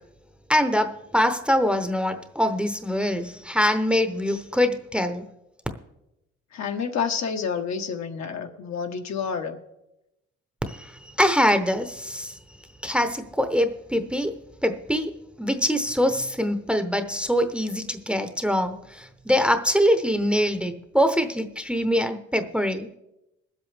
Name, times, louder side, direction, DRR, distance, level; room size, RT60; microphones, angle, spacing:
voice 1, 0.5-5.2 10.7-12.3 12.8-14.4 14.6-22.9, equal, 5° right, 8 dB, 0.8 m, -24 dB
voice 2, 6.5-9.6, left 6 dB, 65° left, 5 dB, 1.2 m, -29 dB
21.0 x 7.9 x 3.4 m, 0.89 s
cardioid pair, 90°, 30 cm